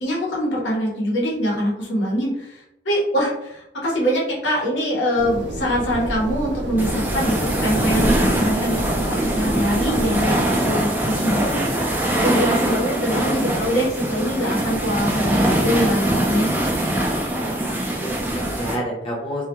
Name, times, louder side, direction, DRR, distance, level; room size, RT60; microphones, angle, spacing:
voice 1, 0.0-8.9 9.3-16.5, equal, 85° left, -3 dB, 0.9 m, -23 dB
sound 1, 5.2-10.3, right 1 dB, 80° right, 0.4 m, -28 dB
sound 2, 6.8-18.8, right 1 dB, 10° right, 0.3 m, -22 dB
voice 2, 17.3-19.4, equal, 30° left, -4 dB, 0.7 m, -30 dB
2.3 x 2.1 x 2.9 m, 0.83 s
head